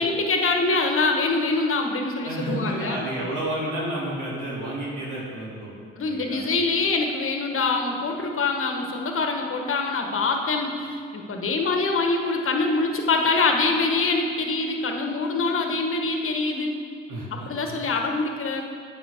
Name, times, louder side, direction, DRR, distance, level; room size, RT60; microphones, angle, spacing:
voice 1, 0.0-3.1 6.0-16.7 17.3-18.7, left 3 dB, 40° left, 3 dB, 1.3 m, -24 dB
voice 2, 2.2-5.8 6.0-6.4 17.1-17.7, right 1 dB, 65° right, -6 dB, 2.3 m, -30 dB
9.1 x 7.8 x 3.6 m, 2.2 s
hypercardioid pair, 55°, 32 cm